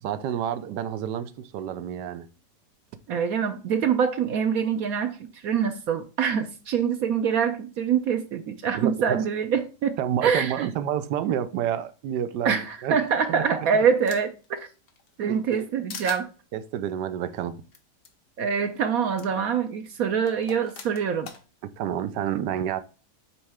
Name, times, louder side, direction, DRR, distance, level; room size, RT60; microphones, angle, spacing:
voice 1, 0.0-2.3 8.7-9.2 10.0-13.0 13.3-13.4 13.7-13.8 15.3-15.7 16.5-17.6 21.6-22.8, right 10 dB, 90° right, 1.3 m, -29 dB
voice 2, 3.1-10.7 12.4-14.7 15.2-16.3 18.4-21.3, right 7 dB, 65° right, 1.0 m, -25 dB
sound 1, 13.1-14.5 14.9-15.6 15.9-16.2 17.7-17.8 18.0-18.1 19.2-19.3 20.3-21.4, left 6 dB, 85° left, 1.7 m, -42 dB
8.5 x 3.2 x 3.4 m
omnidirectional pair, 1.8 m